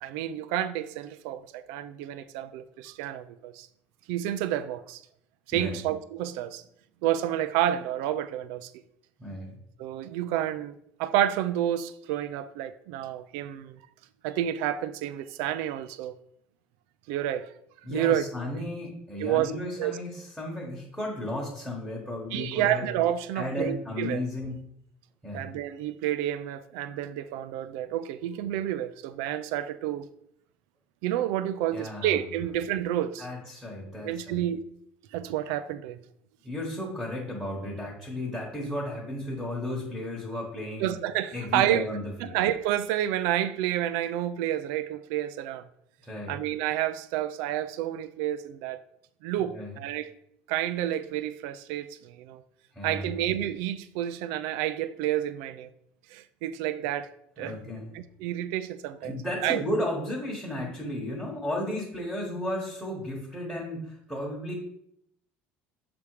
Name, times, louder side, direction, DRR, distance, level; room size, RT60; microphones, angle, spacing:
voice 1, 0.0-3.7 4.1-5.0 5.5-6.6 7.0-8.7 9.8-13.8 14.2-16.2 17.1-17.5 17.9-18.6 19.2-19.5 19.8-20.0 22.3-24.2 25.3-30.1 31.0-33.3 34.0-34.6 35.1-36.0 40.8-41.9 42.2-45.7 46.3-48.8 49.2-50.1 50.5-52.4 52.8-55.7 56.1-57.1 57.4-57.5 57.9-59.2 59.4-59.6, right 12 dB, 90° right, 0.4 m, -29 dB
voice 2, 9.2-9.5 17.8-22.9 23.3-24.6 25.2-25.5 31.7-32.2 33.2-34.4 36.4-40.9 41.3-42.4 46.0-46.4 49.5-49.8 52.7-53.2 57.4-58.0 59.0-64.5, left 1 dB, ahead, 1.2 m, -34 dB
6.9 x 3.5 x 4.8 m
cardioid pair, 170°, 4 cm